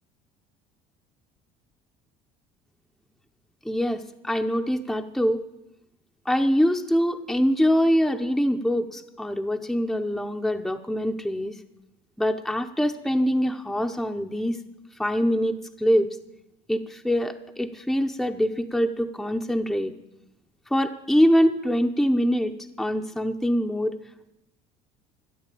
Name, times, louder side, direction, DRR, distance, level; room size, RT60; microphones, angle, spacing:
voice 1, 3.6-5.4 6.3-11.6 12.2-14.6 15.0-16.1 16.7-19.9 20.7-23.9, equal, ahead, 4 dB, 0.7 m, -24 dB
13.5 x 8.2 x 8.3 m, 0.88 s
cardioid pair, 120°, 16 cm